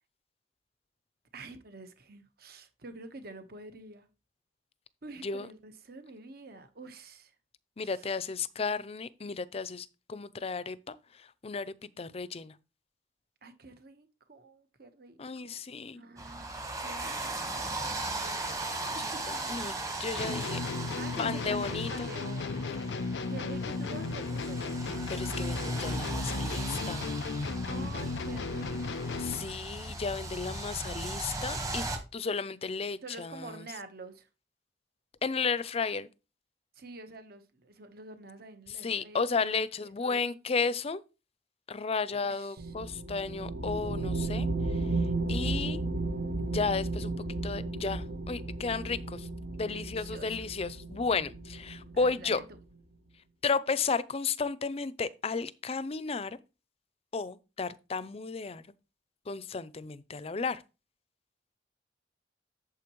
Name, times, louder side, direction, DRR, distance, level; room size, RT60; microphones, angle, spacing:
voice 1, 1.3-4.1 5.0-7.3 7.8-8.1 13.4-15.6 16.0-19.7 20.1-20.5 20.9-25.2 27.7-29.5 33.0-34.3 36.7-40.3 41.7-42.7 49.6-50.4 51.9-52.6, right 3 dB, 60° right, 1.2 m, -48 dB
voice 2, 7.8-12.5 15.2-16.0 19.3-20.6 21.2-22.1 25.1-27.0 29.2-31.9 32.1-33.6 35.2-36.1 38.8-41.0 41.7-44.8 45.3-45.8 46.4-47.1 47.4-49.3 49.5-52.4 53.4-56.4 57.1-58.6 59.3-60.6, left 4 dB, 35° left, 0.5 m, -33 dB
sound 1, 16.2-32.0, right 2 dB, 20° right, 1.2 m, -37 dB
sound 2, 20.2-29.6, left 3 dB, 85° left, 0.5 m, -35 dB
sound 3, 42.6-52.6, right 2 dB, 75° right, 0.9 m, -34 dB
8.5 x 7.3 x 3.1 m
head